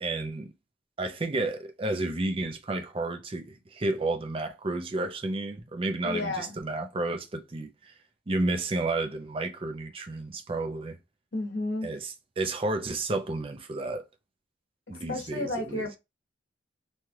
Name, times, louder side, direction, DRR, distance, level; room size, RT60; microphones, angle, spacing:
voice 1, 0.0-0.5 1.0-7.9 8.3-11.0 11.8-14.0 14.9-15.8, right 2 dB, 30° right, 0.5 m, -31 dB
voice 2, 6.0-6.6 11.3-11.9 15.1-16.0, left 2 dB, 70° left, 1.2 m, -32 dB
3.2 x 2.3 x 2.8 m
head